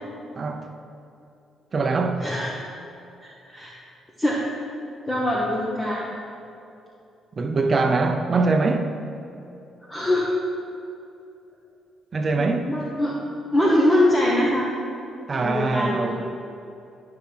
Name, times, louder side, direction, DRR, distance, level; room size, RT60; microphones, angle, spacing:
voice 1, 0.4-0.7 1.7-2.2 7.4-8.9 12.1-12.7 15.3-16.3, right 3 dB, 40° right, 0.6 m, -23 dB
voice 2, 2.2-2.5 3.2-3.7 4.2-4.4 5.1-6.1 9.9-10.3 12.4-13.1 13.5-14.7 15.3-16.3, left 1 dB, 20° left, 1.1 m, -23 dB
12.0 x 5.9 x 3.4 m
cardioid pair, 90°, 0 cm